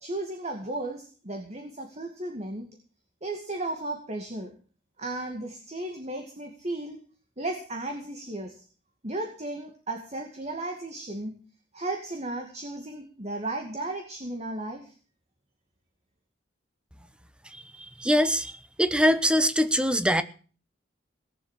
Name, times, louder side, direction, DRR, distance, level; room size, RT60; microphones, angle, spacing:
voice 1, 0.0-2.7 3.2-4.5 5.0-7.0 7.4-8.6 9.0-11.4 11.7-14.9, right 2 dB, 35° right, 4 dB, 2.3 m, -35 dB
voice 2, 18.0-18.5 18.8-20.2, equal, 5° right, 12 dB, 1.0 m, -22 dB
18.5 x 7.5 x 8.3 m, 0.39 s
head